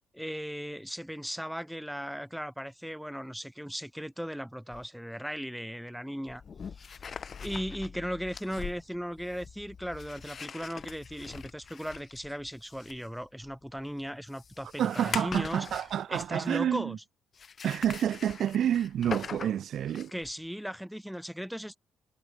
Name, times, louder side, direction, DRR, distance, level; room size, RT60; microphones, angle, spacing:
voice 1, 0.1-6.4 6.8-6.9 7.4-15.7 16.1-17.0 20.1-21.8, equal, ahead, 2.0 m, -37 dB
sound 1, 4.7-4.9 6.3-16.6 17.3-20.3, left 6 dB, 45° left, 2.2 m, -43 dB
voice 2, 14.8-17.0 17.6-20.1, right 10 dB, 65° right, 0.6 m, -29 dB
cardioid pair, 90°, 0 cm